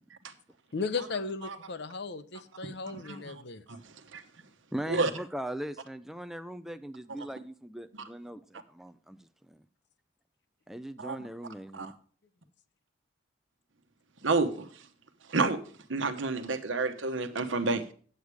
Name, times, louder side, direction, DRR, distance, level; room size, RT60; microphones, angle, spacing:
voice 1, 0.7-3.6, left 4 dB, 60° left, 12 dB, 0.7 m, -36 dB
voice 2, 2.9-3.3 3.7-3.8 4.1-4.2 4.9-5.1 11.0-11.2 11.7-11.9 14.2-14.7 15.3-15.6 15.9-17.9, right 3 dB, 80° right, 8 dB, 1.0 m, -29 dB
voice 3, 4.7-9.6 10.7-11.9, right 1 dB, ahead, 9 dB, 0.4 m, -40 dB
8.4 x 8.0 x 4.7 m, 0.42 s
head